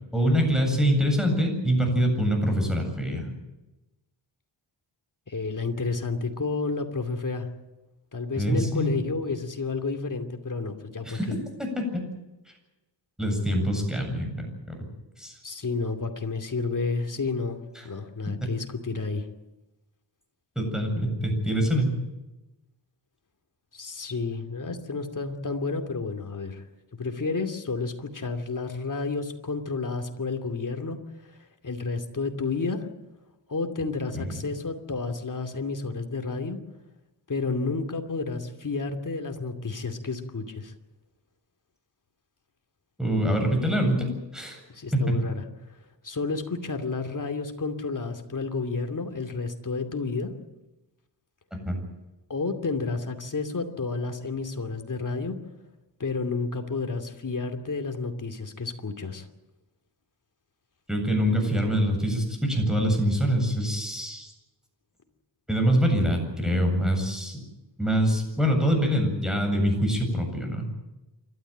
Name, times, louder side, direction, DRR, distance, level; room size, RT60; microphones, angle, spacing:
voice 1, 0.1-3.3 8.4-8.9 11.0-11.3 11.9-12.0 13.2-14.5 15.2-15.3 20.6-21.9 34.1-34.3 43.0-44.6 44.9-45.2 51.7-51.8 60.9-64.3 65.5-67.4 67.8-70.7, equal, ahead, 3 dB, 7.9 m, -24 dB
voice 2, 5.3-7.5 8.1-11.4 15.4-17.6 17.8-19.3 23.7-26.6 27.0-31.3 31.6-32.9 33.5-36.6 37.3-40.7 44.7-45.4 46.0-50.3 52.3-55.4 56.0-59.3, left 4 dB, 45° left, 5 dB, 2.7 m, -31 dB
28.5 x 13.0 x 9.1 m, 1.0 s
wide cardioid pair, 85°, 45 cm